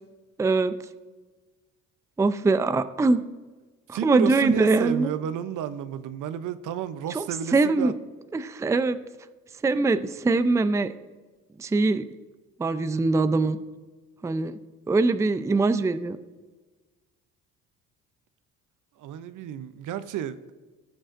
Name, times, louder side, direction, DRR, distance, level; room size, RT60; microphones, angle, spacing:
voice 1, 0.4-0.7 2.2-3.2 3.9-5.1 7.1-7.2 7.5-7.9 8.3-9.0 9.6-10.9 11.6-12.1 12.6-13.6 14.2-14.6 14.9-16.2, right 3 dB, 10° right, 0.4 m, -22 dB
voice 2, 3.9-7.9 19.0-20.4, right 10 dB, 60° right, 0.6 m, -31 dB
16.5 x 6.3 x 2.5 m
supercardioid pair, 70°, 35 cm